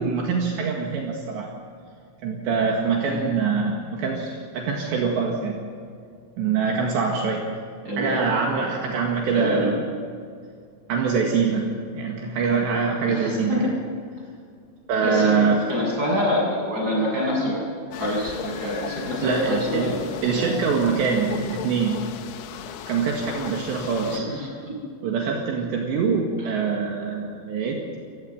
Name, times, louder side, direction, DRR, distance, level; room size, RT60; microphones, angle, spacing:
voice 1, 0.0-1.5 2.2-5.6 6.4-7.5 8.0-9.8 10.9-13.6 14.9-15.6 19.2-20.0 20.2-22.0 22.9-24.3 25.0-28.0, right 5 dB, 70° right, 0 dB, 4.0 m, -24 dB
voice 2, 7.8-8.3 9.3-9.7 13.1-13.8 15.0-15.3 15.7-17.6 18.0-20.1 20.3-20.5 24.0-24.5 26.4-26.5, left 1 dB, 20° right, -2 dB, 7.7 m, -26 dB
sound 1, 17.9-24.2, left 8 dB, 85° left, 3.7 m, -37 dB
28.0 x 15.5 x 7.8 m, 2.2 s
omnidirectional pair, 5.5 m